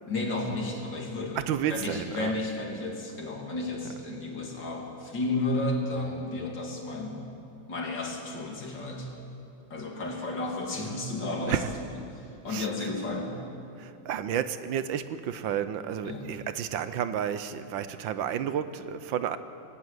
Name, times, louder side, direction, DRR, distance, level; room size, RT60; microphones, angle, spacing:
voice 1, 0.1-1.4 1.7-7.3 7.7-9.1 9.7-13.4 16.0-16.3, left 2 dB, 65° left, 0 dB, 3.2 m, -32 dB
voice 2, 1.3-2.4 11.5-11.7 12.5-12.9 13.8-19.4, right 9 dB, 75° right, 12 dB, 1.5 m, -31 dB
19.5 x 18.5 x 8.1 m, 2.7 s
omnidirectional pair, 2.1 m